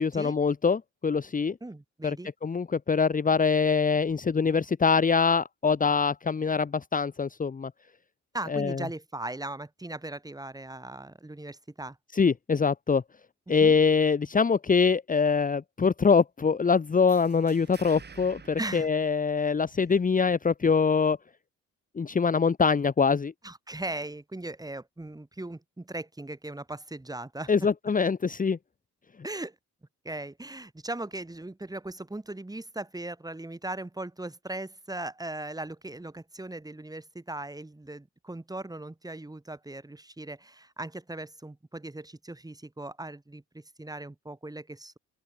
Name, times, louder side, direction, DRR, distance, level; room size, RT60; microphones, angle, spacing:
voice 1, 0.0-1.6 2.0-2.2 2.4-7.7 8.5-8.8 12.1-13.0 13.5-21.2 22.0-23.3 27.5-28.6, left 5 dB, 25° left, 1.2 m, -24 dB
voice 2, 1.6-2.3 8.3-12.0 13.5-13.8 18.6-18.9 23.4-27.7 29.2-29.6 30.0-45.0, right 2 dB, 10° right, 7.0 m, -38 dB
sound 1, 17.1-19.8, right 5 dB, 35° right, 4.8 m, -50 dB
open air
cardioid pair, 90°, 30 cm